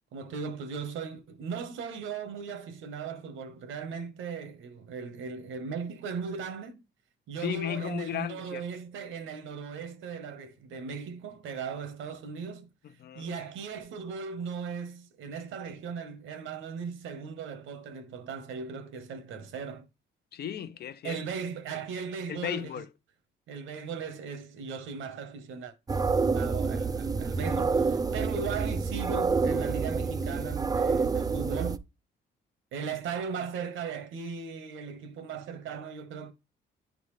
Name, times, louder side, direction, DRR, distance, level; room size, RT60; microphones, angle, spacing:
voice 1, 0.1-6.8 7.3-12.7 13.1-19.9 21.0-22.8 23.5-25.7 26.3-31.8 32.7-36.3, right 6 dB, 80° right, 1.2 m, -38 dB
voice 2, 7.4-8.6 12.8-13.4 20.3-21.2 22.3-22.9, left 10 dB, 55° left, 0.6 m, -35 dB
sound 1, 25.9-31.8, right 4 dB, 20° right, 0.4 m, -28 dB
10.5 x 3.9 x 3.2 m
cardioid pair, 90°, 20 cm